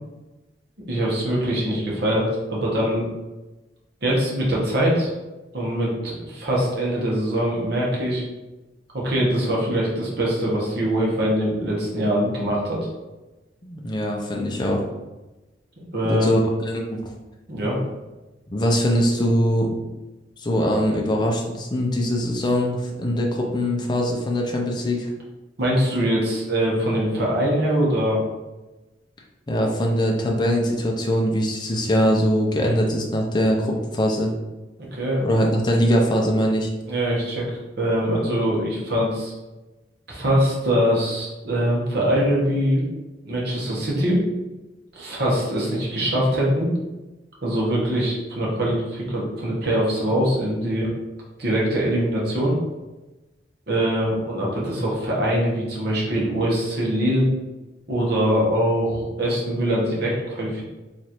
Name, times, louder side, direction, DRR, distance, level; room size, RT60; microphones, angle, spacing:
voice 1, 0.9-3.1 4.0-5.1 5.5-8.2 8.9-12.8 15.9-16.3 17.5-17.8 25.6-28.2 34.8-35.2 36.9-39.3 40.1-42.8 43.2-44.2 44.9-46.7 47.4-50.9 51.4-52.5 53.7-57.2 57.9-60.6, equal, 65° right, -4 dB, 1.1 m, -23 dB
voice 2, 13.6-14.8 16.1-16.4 16.7-17.0 18.5-19.8 20.4-25.1 29.5-34.3 35.2-36.7, equal, 25° left, 0 dB, 0.5 m, -22 dB
3.1 x 2.5 x 4.3 m, 1.1 s
head